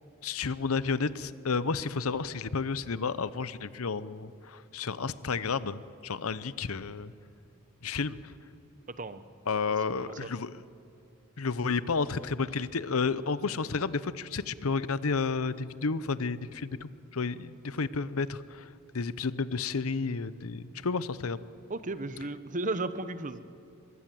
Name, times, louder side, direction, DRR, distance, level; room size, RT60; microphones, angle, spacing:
voice 1, 0.2-7.1 7.8-8.2 9.5-10.5 11.4-21.4, left 4 dB, 85° left, 16 dB, 0.8 m, -31 dB
voice 2, 10.0-10.3 21.7-23.4, right 2 dB, 35° right, 13 dB, 0.9 m, -34 dB
24.0 x 22.5 x 7.7 m, 2.5 s
head